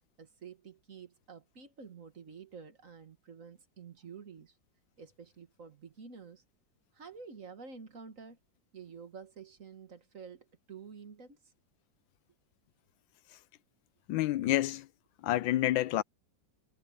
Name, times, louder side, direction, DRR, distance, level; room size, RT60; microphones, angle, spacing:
voice 1, 0.2-4.6 5.0-6.4 6.9-8.4 8.7-11.4, right 5 dB, 45° right, 1.9 m, -49 dB
voice 2, 14.1-14.9 15.2-16.0, left 14 dB, 90° left, 1.4 m, -28 dB
omnidirectional pair, 2.0 m